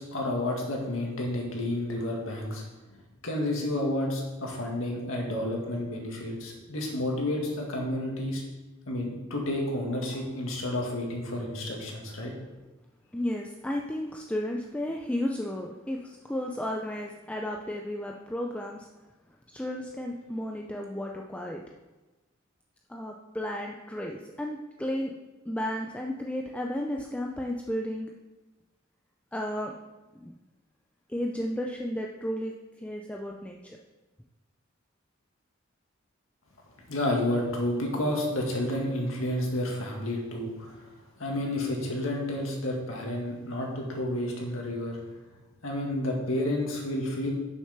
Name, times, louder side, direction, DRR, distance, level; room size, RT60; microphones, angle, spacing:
voice 1, 0.0-2.6 3.2-8.4 8.9-12.3 36.9-40.8 41.2-45.0 45.6-47.3, left 1 dB, 85° left, 0 dB, 1.9 m, -30 dB
voice 2, 13.1-18.9 19.5-21.6 22.9-25.1 25.5-28.1 29.3-29.7 30.1-30.3 31.1-33.8, left 1 dB, 5° left, 0 dB, 0.4 m, -33 dB
6.5 x 6.3 x 5.9 m, 1.1 s
head